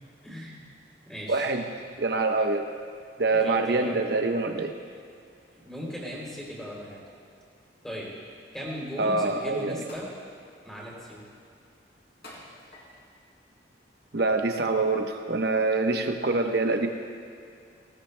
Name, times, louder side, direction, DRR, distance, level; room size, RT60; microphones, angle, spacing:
voice 1, 0.2-0.6 1.1-1.5 3.4-4.0 5.6-7.0 7.8-8.1 8.5-10.1 10.6-11.2, equal, 5° left, -5 dB, 3.0 m, -37 dB
voice 2, 1.3-1.7 2.0-2.7 3.2-4.7 9.0-9.8 14.1-16.9, right 3 dB, 55° right, 4 dB, 0.9 m, -25 dB
sound 1, 9.9-10.3 10.8-11.2 12.2-13.1 13.9-14.1, left 1 dB, 55° left, 3.4 m, -48 dB
19.0 x 16.5 x 2.2 m, 2.3 s
head